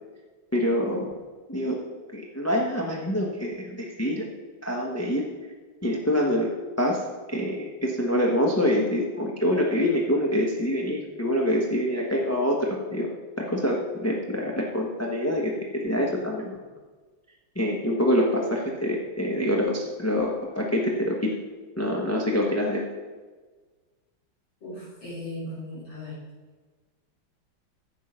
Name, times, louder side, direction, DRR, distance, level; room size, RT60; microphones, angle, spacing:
voice 1, 0.5-1.1 1.5-1.8 2.1-4.2 4.6-5.2 5.8-6.5 6.8-7.0 7.3-13.1 13.4-15.5 15.8-16.6 17.5-21.3 21.8-22.8, left 1 dB, 10° left, -2 dB, 0.9 m, -25 dB
voice 2, 24.6-26.2, left 1 dB, 70° left, -10 dB, 4.4 m, -37 dB
10.5 x 7.6 x 5.7 m, 1.4 s
omnidirectional pair, 2.2 m